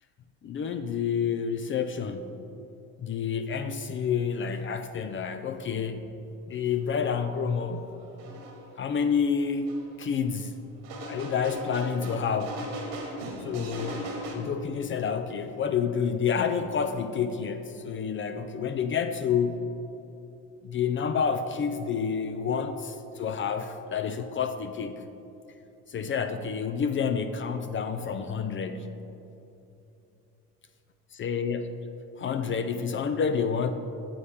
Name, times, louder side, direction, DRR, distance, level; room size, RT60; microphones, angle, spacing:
voice 1, 0.4-2.4 3.0-6.1 6.5-7.9 8.8-9.7 10.0-10.6 11.0-12.6 13.4-19.7 20.6-25.0 25.9-28.9 31.2-31.8 32.2-33.7, left 6 dB, 35° left, 8 dB, 0.4 m, -29 dB
sound 1, 7.6-7.7 8.2-8.6 9.7-9.8 10.8-14.3, right 1 dB, 80° right, 1.6 m, -38 dB
8.5 x 7.2 x 3.5 m, 2.9 s
supercardioid pair, 80°, 35 cm